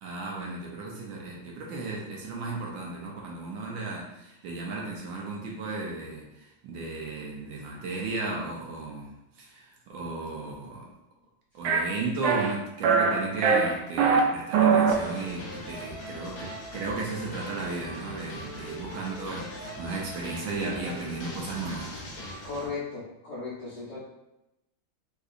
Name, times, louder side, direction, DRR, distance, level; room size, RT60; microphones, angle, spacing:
voice 1, 0.0-10.9 11.5-22.1, right 3 dB, 75° right, -2 dB, 1.3 m, -35 dB
sound 1, 11.6-11.8 12.2-12.5 12.8-13.1 13.4-14.2 14.5-14.9, right 6 dB, 90° right, 1.5 m, -21 dB
sound 2, 14.9-22.7, equal, 55° left, 1.0 m, -40 dB
voice 2, 22.4-24.0, left 4 dB, 80° left, -8 dB, 0.6 m, -36 dB
3.8 x 2.5 x 2.4 m, 0.91 s
omnidirectional pair, 2.4 m